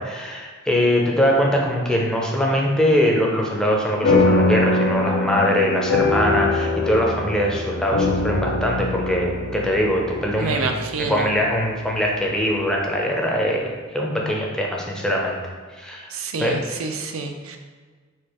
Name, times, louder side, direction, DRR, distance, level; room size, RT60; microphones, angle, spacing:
voice 1, 0.0-10.7 11.0-15.4 15.8-16.1 16.4-16.6, equal, 5° left, -2 dB, 0.6 m, -22 dB
sound 1, 4.0-12.8, left 2 dB, 75° left, 0.8 m, -23 dB
voice 2, 10.4-11.3 16.1-17.6, right 4 dB, 70° right, 5 dB, 0.5 m, -27 dB
4.4 x 2.4 x 4.7 m, 1.5 s
head